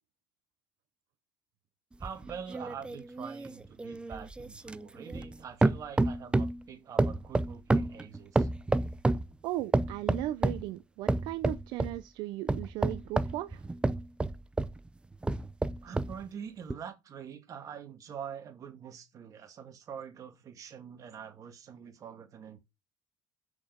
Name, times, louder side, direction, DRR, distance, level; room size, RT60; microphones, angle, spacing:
sound 1, 2.0-5.4 5.6-6.6 7.0-9.3 9.7-10.7 11.1-12.0 12.5-14.8 15.2-16.2 16.7-16.8, right 2 dB, 15° right, 0.6 m, -29 dB
voice 1, 2.0-8.5 15.8-22.6, right 7 dB, 45° right, 2.2 m, -45 dB
voice 2, 9.4-13.6, right 16 dB, 75° right, 0.6 m, -37 dB
6.4 x 6.0 x 5.8 m
supercardioid pair, 95°, 8 cm